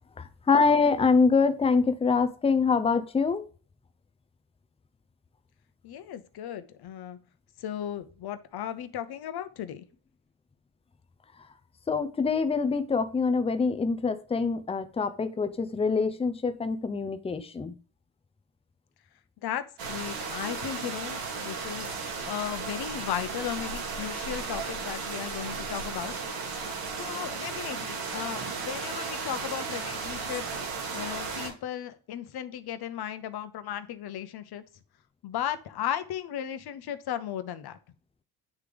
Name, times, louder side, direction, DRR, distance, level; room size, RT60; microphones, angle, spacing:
voice 1, 0.2-3.5 11.9-17.7, left 4 dB, 15° left, 11 dB, 0.6 m, -25 dB
voice 2, 5.8-7.2 7.6-9.9 19.4-21.9 22.3-26.1 26.9-30.4 30.9-34.6 35.2-37.8, left 10 dB, 50° left, 11 dB, 0.9 m, -36 dB
sound 1, 19.8-31.5, right 4 dB, 80° right, 2.1 m, -35 dB
9.5 x 3.3 x 3.4 m, 0.39 s
supercardioid pair, 85°, 47 cm